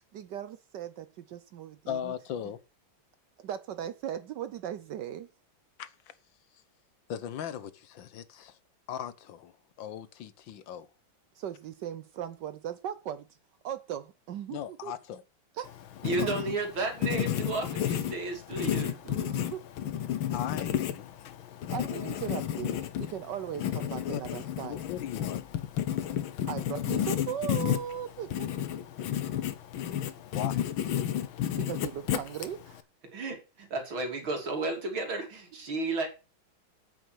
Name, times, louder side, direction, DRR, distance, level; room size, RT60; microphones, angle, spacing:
voice 1, 0.1-2.1 3.4-5.3 11.3-13.3 13.6-14.9 15.6-15.8 16.0-16.3 19.0-19.6 21.7-24.8 26.5-28.8 31.6-32.8, right 10 dB, 70° right, 1.3 m, -38 dB
voice 2, 1.9-2.6 5.8-5.9 7.1-8.6 8.9-10.9 14.5-15.2 20.3-21.1 24.1-24.2 24.6-25.4 30.3-30.6, left 9 dB, 70° left, 1.7 m, -38 dB
Writing, 15.6-32.8, left 10 dB, 90° left, 1.8 m, -32 dB
voice 3, 16.0-19.2 33.1-36.1, right 3 dB, 85° right, 3.9 m, -33 dB
9.1 x 8.7 x 6.3 m
omnidirectional pair, 2.2 m